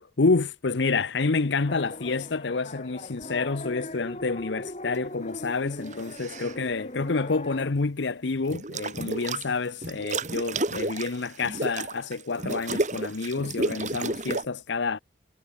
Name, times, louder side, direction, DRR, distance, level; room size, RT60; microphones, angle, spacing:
voice 1, 0.0-15.0, left 4 dB, 75° left, 0.8 m, -28 dB
sound 1, 1.7-7.7, left 1 dB, 35° left, 4.0 m, -40 dB
sound 2, 5.9-6.6 8.5-9.5 9.8-14.5, right 2 dB, 40° right, 2.0 m, -31 dB
head